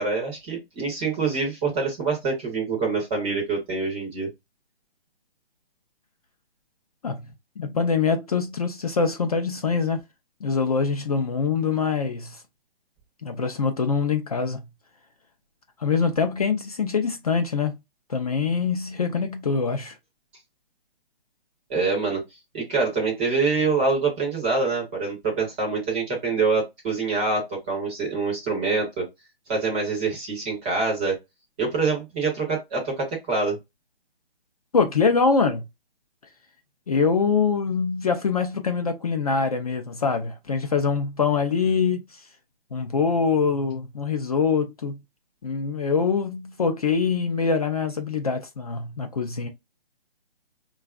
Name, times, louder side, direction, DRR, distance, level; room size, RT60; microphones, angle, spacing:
voice 1, 0.0-4.3 21.7-22.2 22.5-29.1 29.5-31.2 31.6-33.6, right 4 dB, 10° right, 0.6 m, -25 dB
voice 2, 7.6-10.0 10.4-12.4 13.2-14.6 15.8-17.8 18.1-19.9 34.7-35.6 36.9-42.0 42.7-45.0 45.4-49.5, left 5 dB, 40° left, 0.5 m, -24 dB
4.9 x 2.3 x 2.3 m
hypercardioid pair, 155°, 31 cm